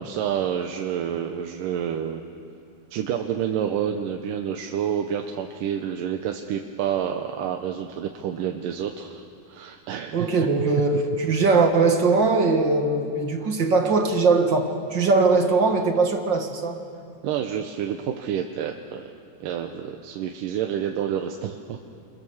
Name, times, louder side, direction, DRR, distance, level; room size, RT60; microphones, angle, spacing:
voice 1, 0.0-2.3 2.9-10.3 17.2-19.1 19.4-21.8, right 9 dB, 80° right, 3 dB, 2.6 m, -29 dB
voice 2, 10.1-16.8, right 3 dB, 45° right, 4 dB, 1.8 m, -21 dB
27.0 x 26.5 x 7.2 m, 2.4 s
omnidirectional pair, 3.8 m